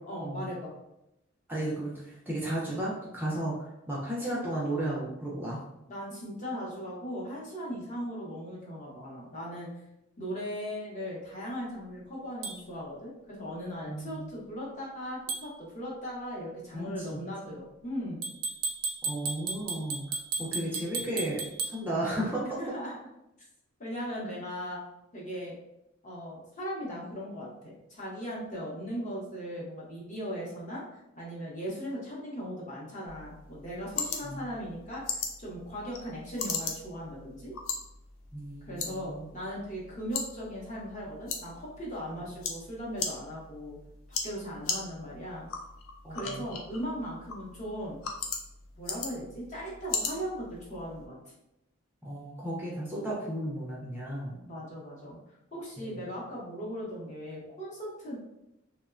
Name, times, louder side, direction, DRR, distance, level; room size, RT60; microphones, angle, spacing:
voice 1, 0.1-0.7 5.9-9.7 10.2-18.3 22.6-23.0 23.8-24.8 25.1-25.5 26.0-30.8 31.2-37.5 38.6-43.8 44.2-45.5 46.1-48.0 48.8-51.2 54.4-55.2 55.5-58.1, equal, 35° left, -5 dB, 0.7 m, -38 dB
voice 2, 1.5-5.6 13.8-14.3 16.7-17.2 19.0-22.6 34.2-34.4 38.3-39.3 46.0-46.5 52.0-54.4 55.8-56.0, right 1 dB, 10° right, -6 dB, 0.4 m, -34 dB
sound 1, 12.4-12.6 15.3-15.5 18.2-21.8, right 4 dB, 90° right, 0.4 m, -34 dB
sound 2, 33.1-51.1, left 5 dB, 70° left, 0.4 m, -39 dB
2.9 x 2.1 x 2.4 m, 0.88 s
head